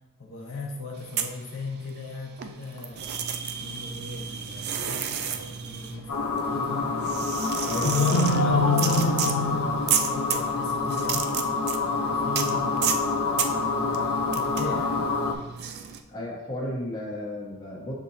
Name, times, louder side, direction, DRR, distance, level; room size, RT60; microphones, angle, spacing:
voice 1, 0.2-3.1 3.6-6.9 7.7-11.3 11.9-13.1 13.8-15.0, left 3 dB, 65° left, -1 dB, 1.0 m, -37 dB
sound 1, 1.0-2.1 2.4-16.0, right 8 dB, 45° right, 0.3 m, -33 dB
sound 2, 6.1-15.3, left 3 dB, 85° left, 0.6 m, -26 dB
voice 2, 16.1-17.9, left 1 dB, 20° left, -5 dB, 0.9 m, -34 dB
7.0 x 2.7 x 2.7 m, 1.0 s
head